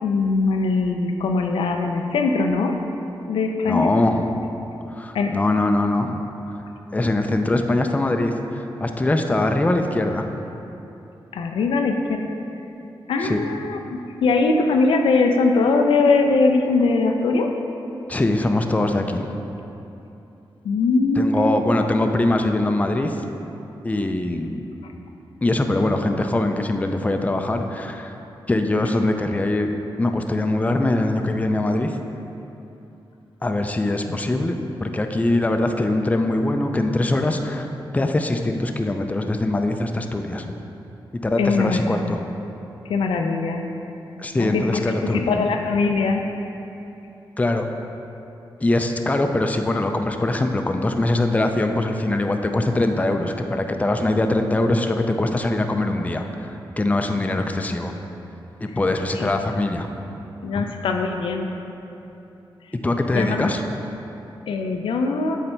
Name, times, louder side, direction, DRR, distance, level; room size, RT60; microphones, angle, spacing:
voice 1, 0.0-2.7 3.3-3.9 5.1-5.3 11.3-12.2 13.1-17.5 20.6-21.3 41.4-42.2 42.9-43.6 44.4-46.2 59.1-59.3 60.4-61.5 63.1-63.5 64.5-65.4, left 3 dB, 90° left, 4 dB, 0.4 m, -21 dB
voice 2, 3.6-4.5 4.9-6.3 6.9-10.4 13.2-13.4 18.1-19.4 21.2-23.2 23.8-24.7 25.4-28.2 28.5-29.7 30.0-32.0 33.4-34.5 34.8-37.7 37.9-40.6 41.2-42.2 44.2-45.2 47.4-47.6 48.6-57.9 58.6-59.9 60.5-60.7 62.7-63.6, left 2 dB, 15° left, 5 dB, 0.4 m, -22 dB
7.8 x 3.3 x 4.4 m, 3.0 s
cardioid pair, 70°, 9 cm